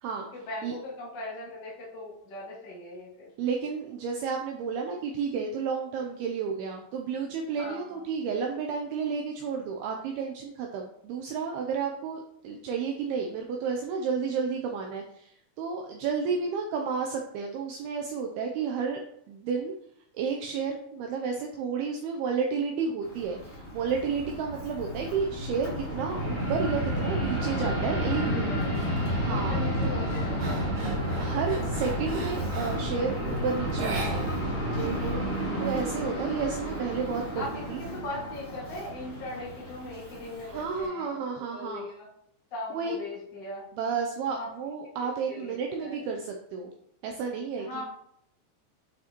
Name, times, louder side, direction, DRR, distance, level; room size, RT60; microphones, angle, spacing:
voice 1, 0.3-3.3 7.5-8.0 12.5-12.6 28.0-28.7 29.3-31.0 34.5-35.6 37.3-41.2 41.5-42.1 42.5-43.6 44.3-44.5 45.0-46.0 47.6-47.8, left 1 dB, 55° left, -6 dB, 1.1 m, -40 dB
voice 2, 3.4-19.0 19.3-19.8 20.1-28.7 29.2-29.6 31.2-34.3 34.7-35.2 35.6-37.4 37.7-37.8 40.5-41.9 42.7-43.0 43.8-46.7 47.0-47.8, right 5 dB, 85° right, 2 dB, 2.2 m, -31 dB
Fixed-wing aircraft airplane, 23.0-40.8, equal, 30° left, 1.1 m, -31 dB
sound 1, 28.7-29.1 29.5-33.0 33.7-34.7 34.9-35.0 35.4-36.3, right 2 dB, 60° right, 2.1 m, -39 dB
8.8 x 5.8 x 3.0 m, 0.72 s
omnidirectional pair, 5.2 m